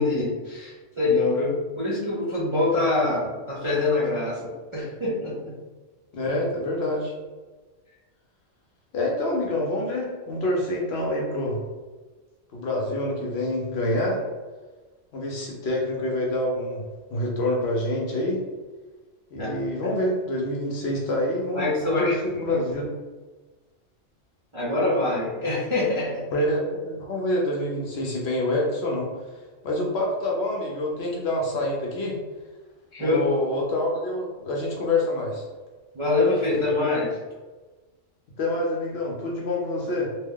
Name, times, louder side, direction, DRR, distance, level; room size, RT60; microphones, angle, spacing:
voice 1, 0.0-5.6 19.3-19.6 21.5-22.1 24.5-26.2 32.9-33.2 35.9-37.2, left 2 dB, 40° right, -8 dB, 0.4 m, -25 dB
voice 2, 6.1-7.1 8.9-11.6 12.5-14.2 15.1-16.8 17.1-18.4 19.3-22.9 26.3-29.1 29.6-32.2 33.0-35.4 38.4-40.1, left 1 dB, 65° left, -2 dB, 0.8 m, -26 dB
2.8 x 2.1 x 3.6 m, 1.3 s
omnidirectional pair, 1.3 m